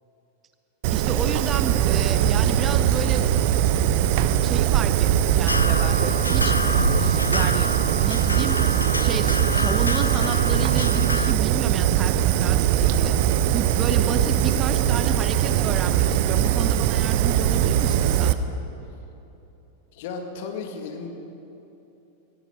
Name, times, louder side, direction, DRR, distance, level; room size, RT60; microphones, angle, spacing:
Fire, 0.8-18.3, right 11 dB, 50° right, 0.6 m, -21 dB
voice 1, 0.9-3.3 4.4-6.6 7.0-7.7 8.0-13.1 13.5-18.4, right 5 dB, 25° right, 9 dB, 0.9 m, -32 dB
sound 1, 5.5-11.3, left 3 dB, 80° left, 0.3 m, -28 dB
voice 2, 19.9-21.1, left 5 dB, 50° left, 4 dB, 2.0 m, -34 dB
18.5 x 15.0 x 5.1 m, 2.9 s
figure-of-eight pair, 90°, 0 cm